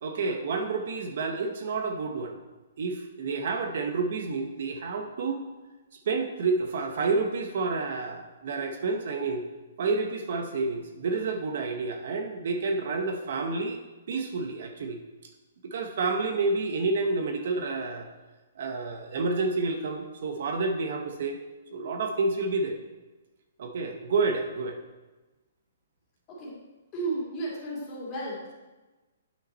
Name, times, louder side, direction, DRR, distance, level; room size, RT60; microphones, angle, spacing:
voice 1, 0.0-2.4 2.8-5.4 5.9-9.4 9.8-13.8 14.1-15.0 15.6-18.1 18.6-21.4 21.7-22.8 23.6-24.8, right 3 dB, 55° right, 5 dB, 0.8 m, -29 dB
voice 2, 26.9-28.5, right 2 dB, 20° left, -6 dB, 2.4 m, -33 dB
8.9 x 5.6 x 4.2 m, 1.2 s
hypercardioid pair, 170°, 0 cm